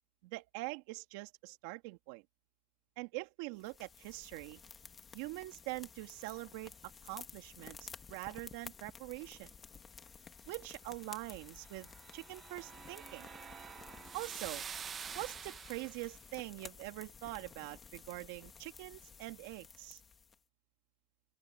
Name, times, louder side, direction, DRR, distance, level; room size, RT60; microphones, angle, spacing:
voice 1, 0.2-2.2 3.0-4.6 5.1-9.5 10.5-13.3 14.1-14.6 15.1-20.0, right 22 dB, 75° right, 2.1 m, -44 dB
sound 1, 3.6-20.4, left 6 dB, 25° left, 2.1 m, -54 dB
sound 2, 11.5-16.2, right 7 dB, 30° right, 0.9 m, -47 dB
open air
supercardioid pair, 115°, 0 cm